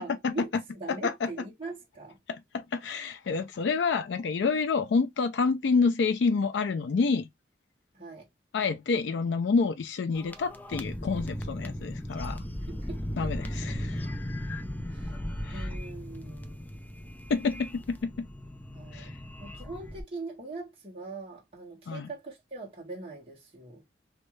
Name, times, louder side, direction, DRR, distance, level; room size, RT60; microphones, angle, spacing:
voice 1, 0.0-2.2 7.9-8.3 12.2-12.3 12.7-13.0 14.9-15.1 15.5-16.6 18.7-19.1 19.4-23.8, right 3 dB, 30° right, 1.6 m, -41 dB
voice 2, 0.9-1.3 2.3-7.3 8.5-12.4 13.2-14.1 15.4-15.7 17.3-18.3 18.9-19.1 21.9-22.1, left 4 dB, 75° left, 0.4 m, -28 dB
sound 1, 10.1-20.0, equal, 10° left, 0.4 m, -37 dB
3.1 x 2.7 x 3.1 m
head